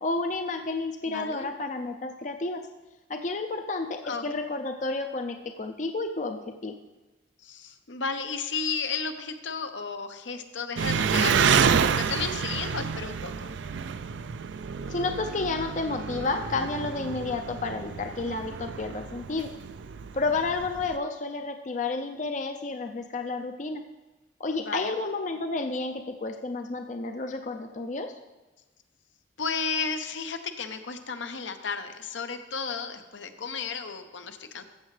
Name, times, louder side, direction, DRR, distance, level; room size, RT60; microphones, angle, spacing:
voice 1, 0.0-2.6 3.1-6.7 14.9-19.5 20.1-23.8 24.4-28.1, left 3 dB, 40° left, 5 dB, 0.5 m, -31 dB
voice 2, 1.1-1.5 4.0-4.2 7.4-13.6 24.6-24.9 29.4-34.6, left 5 dB, 80° left, 8 dB, 0.8 m, -33 dB
Engine, 10.8-20.9, right 6 dB, 75° right, 0.4 m, -29 dB
14.0 x 7.5 x 3.3 m, 1.1 s
head